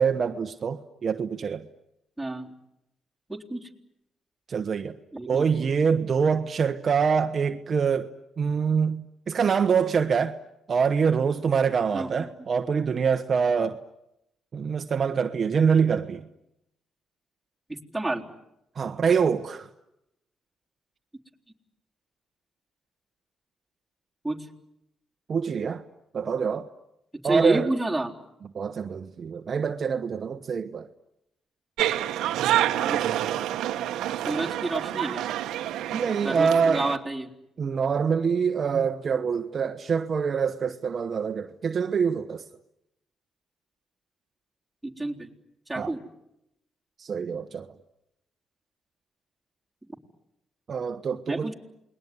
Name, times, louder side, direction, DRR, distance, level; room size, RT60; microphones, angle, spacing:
voice 1, 0.0-1.6 4.5-4.9 5.3-8.1 8.4-10.4 10.7-13.8 14.5-16.3 18.8-19.7 25.3-25.8 26.1-26.7 27.2-27.7 28.5-30.9 35.9-36.8 37.6-42.4 45.8-45.9 47.0-47.7 50.7-51.5, right 6 dB, 45° right, 1.2 m, -25 dB
voice 2, 2.2-2.5 3.3-3.7 5.1-5.5 11.9-12.3 17.7-18.3 24.2-24.5 27.2-28.1 32.8-33.1 34.2-35.3 36.2-37.3 44.8-45.3 45.7-46.0 51.3-51.5, right 2 dB, 5° right, 3.8 m, -29 dB
sound 1, 31.8-37.0, right 12 dB, 85° right, 1.2 m, -27 dB
29.0 x 21.0 x 9.7 m
cardioid pair, 90°, 0 cm